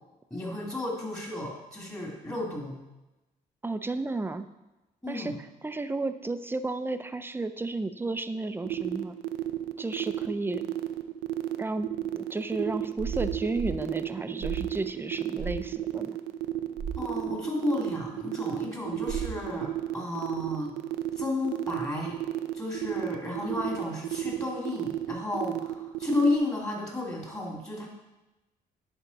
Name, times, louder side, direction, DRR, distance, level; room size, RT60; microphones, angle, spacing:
voice 1, 0.3-2.8 5.0-5.4 17.0-20.8 21.2-22.2 22.5-27.9, left 2 dB, 15° left, -1 dB, 2.3 m, -32 dB
voice 2, 3.6-4.5 5.1-5.3 5.6-9.2 9.8-10.6 11.6-11.9 12.1-16.2, right 2 dB, 10° right, 10 dB, 0.5 m, -32 dB
sound 1, 8.6-26.4, right 13 dB, 85° right, 0.4 m, -32 dB
sound 2, 13.0-13.8 14.4-14.8 15.4-15.7 16.8-17.1 19.1-19.5, right 6 dB, 55° right, 0.8 m, -35 dB
10.5 x 3.6 x 4.0 m, 1.0 s
hypercardioid pair, 45°, 19 cm